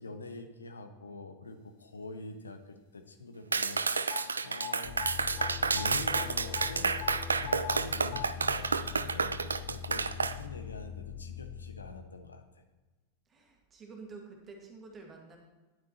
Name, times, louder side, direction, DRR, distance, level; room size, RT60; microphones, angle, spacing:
voice 1, 0.0-4.1 4.4-7.0 7.4-12.6, left 3 dB, 75° left, 7 dB, 0.8 m, -45 dB
Clapping, 3.5-10.4, right 4 dB, 75° right, 0.3 m, -30 dB
sound 1, 4.1-4.2 4.6-4.7 5.0-5.5 5.8-5.9 6.1-6.2 6.5-6.7 7.0-7.1 7.5-7.8 8.1-8.2, left 16 dB, 55° left, 1.6 m, -39 dB
sound 2, 4.8-12.3, left 9 dB, 30° left, 0.6 m, -42 dB
voice 2, 13.3-15.4, right 4 dB, 25° right, 1 dB, 1.9 m, -49 dB
10.5 x 9.3 x 3.0 m, 1.2 s
figure-of-eight pair, 90°, 0 cm